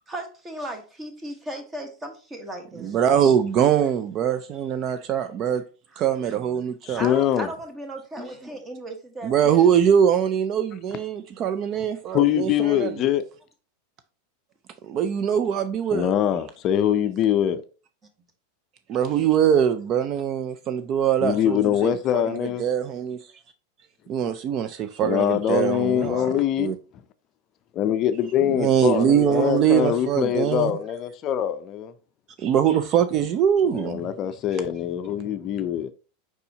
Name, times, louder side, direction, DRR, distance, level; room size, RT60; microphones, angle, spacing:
voice 1, 0.1-3.0 6.9-9.7, right 1 dB, 20° right, 1.2 m, -36 dB
voice 2, 2.8-5.6 6.0-7.1 9.2-13.0 14.8-16.1 18.9-23.2 24.1-26.3 26.6-26.8 28.5-30.7 32.4-34.0, right 9 dB, 40° right, 0.4 m, -22 dB
voice 3, 6.8-7.5 12.1-13.3 15.9-17.6 21.2-22.6 25.0-26.7 27.7-31.9 33.6-35.9, left 10 dB, 40° left, 0.4 m, -23 dB
4.7 x 4.1 x 2.7 m
hypercardioid pair, 110°, 0 cm